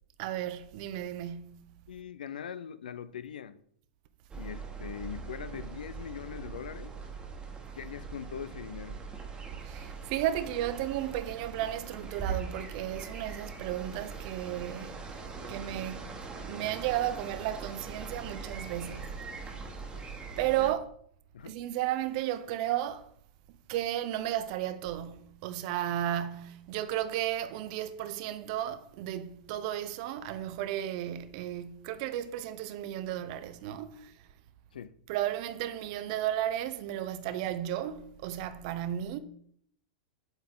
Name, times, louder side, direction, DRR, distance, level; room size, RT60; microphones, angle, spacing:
voice 1, 0.2-1.7 9.6-15.0 15.3-16.1 16.5-19.2 20.4-20.9 21.4-23.1 23.7-34.1 35.1-39.2, right 12 dB, 55° right, 0.7 m, -34 dB
voice 2, 1.9-3.6 4.4-6.9 7.7-9.0 20.6-20.7 21.3-21.5 34.7-34.9, left 8 dB, 80° left, 0.5 m, -41 dB
sound 1, 4.3-20.7, right 5 dB, 20° right, 1.3 m, -41 dB
7.9 x 4.0 x 3.8 m
hypercardioid pair, 110°, 5 cm